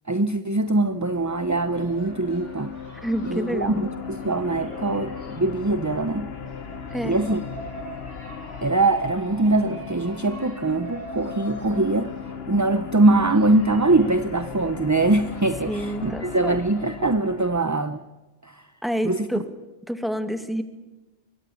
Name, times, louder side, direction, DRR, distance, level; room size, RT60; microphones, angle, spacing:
voice 1, 0.1-2.7 3.2-6.3 7.0-7.4 8.6-12.1 12.5-18.0 18.4-18.7 19.0-19.4, right 2 dB, 20° right, 10 dB, 0.6 m, -22 dB
sound 1, 0.6-17.6, left 6 dB, 60° left, 1.3 m, -37 dB
sound 2, 1.0-17.9, right 1 dB, 90° right, 5.6 m, -44 dB
voice 2, 3.0-3.8 6.9-7.1 15.7-16.6 18.8-19.5 19.9-20.6, equal, ahead, 8 dB, 2.0 m, -28 dB
24.5 x 22.0 x 7.0 m, 1.1 s
omnidirectional pair, 1.2 m